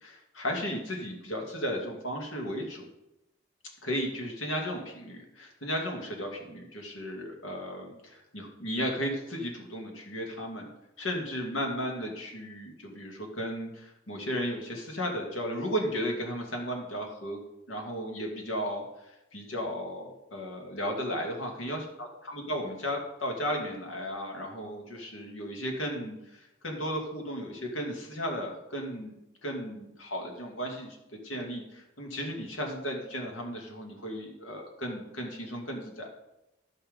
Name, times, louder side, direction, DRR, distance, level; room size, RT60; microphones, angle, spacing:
voice 1, 0.0-2.8 3.8-10.7 11.0-17.4 17.7-18.8 19.3-22.1 22.3-36.1, equal, 85° left, 1 dB, 2.2 m, -35 dB
13.0 x 5.8 x 5.2 m, 0.90 s
head